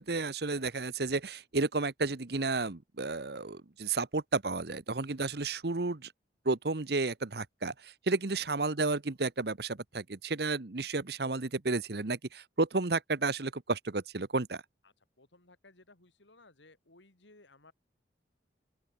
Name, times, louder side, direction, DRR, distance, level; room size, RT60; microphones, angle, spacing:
voice 1, 0.0-6.1 6.4-14.6, right 3 dB, 60° right, 1.0 m, -32 dB
voice 2, 14.8-17.7, left 2 dB, 85° left, 3.7 m, -60 dB
open air
head